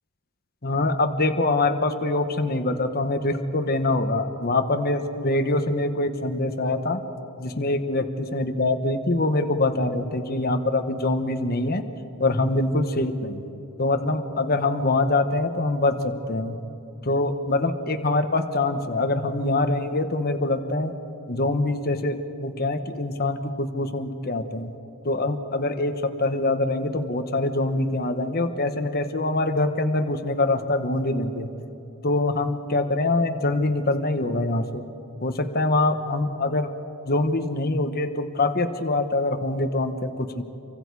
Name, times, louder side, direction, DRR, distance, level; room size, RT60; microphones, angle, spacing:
voice 1, 0.6-7.0 7.4-11.9 12.2-13.4 13.8-16.6 17.0-20.9 21.3-24.7 25.0-31.5 32.0-34.8 35.2-36.7 37.1-40.4, left 2 dB, 45° left, 7 dB, 1.2 m, -24 dB
28.0 x 24.0 x 4.8 m, 2.9 s
head